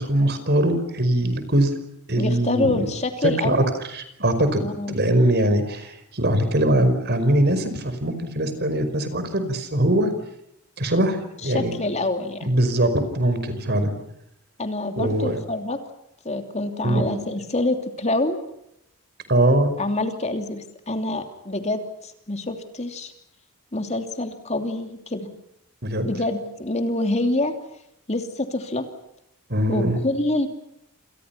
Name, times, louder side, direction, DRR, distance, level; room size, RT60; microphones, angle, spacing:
voice 1, 0.0-1.7 2.1-2.9 3.2-3.6 3.9-10.1 10.8-11.7 12.4-13.9 15.0-15.4 16.8-17.1 19.3-19.7 25.8-26.1 29.5-30.0, right 1 dB, 50° right, 10 dB, 5.2 m, -21 dB
voice 2, 2.2-3.7 4.6-5.0 11.4-12.5 14.6-15.8 16.2-18.4 19.8-23.1 23.7-25.3 26.0-27.5 28.1-28.9 29.7-30.5, left 2 dB, 30° left, 6 dB, 2.9 m, -26 dB
28.5 x 28.5 x 5.8 m, 0.80 s
head